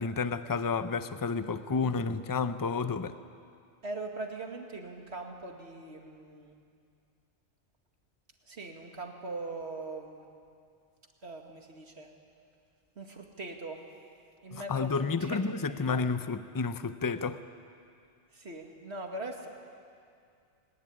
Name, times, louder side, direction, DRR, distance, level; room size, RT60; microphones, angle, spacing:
voice 1, 0.0-3.2 14.5-17.4, left 4 dB, 25° left, 11 dB, 0.6 m, -31 dB
voice 2, 3.8-6.5 8.5-10.2 11.2-12.1 13.0-13.8 14.4-15.4 15.8-16.1 18.3-19.5, right 2 dB, 65° right, 2 dB, 2.5 m, -41 dB
21.0 x 19.0 x 10.0 m, 2.3 s
omnidirectional pair, 1.2 m